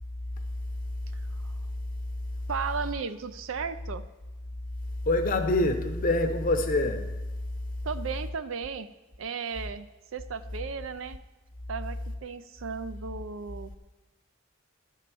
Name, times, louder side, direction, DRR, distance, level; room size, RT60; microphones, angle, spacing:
voice 1, 2.5-4.0 7.8-8.9 9.2-11.2 11.7-13.8, right 5 dB, 70° right, 0.5 m, -35 dB
voice 2, 5.0-7.2, left 2 dB, 40° left, 0.8 m, -25 dB
12.0 x 4.5 x 7.6 m
head